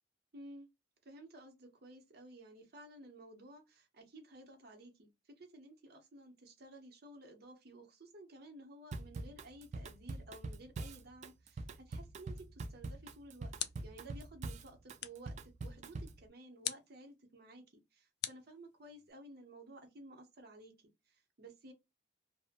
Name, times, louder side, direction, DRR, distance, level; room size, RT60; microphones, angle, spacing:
voice 1, 0.3-0.7 1.0-5.1 5.4-13.5 13.8-17.6 17.9-21.7, right 1 dB, 60° right, 0.8 m, -54 dB
Drum kit / Drum, 8.9-16.2, right 2 dB, 40° right, 0.3 m, -44 dB
sound 1, 12.9-14.1 15.0-15.4 16.6-17.0 18.2-19.1, left 12 dB, 65° left, 0.3 m, -43 dB
2.6 x 2.0 x 2.4 m
head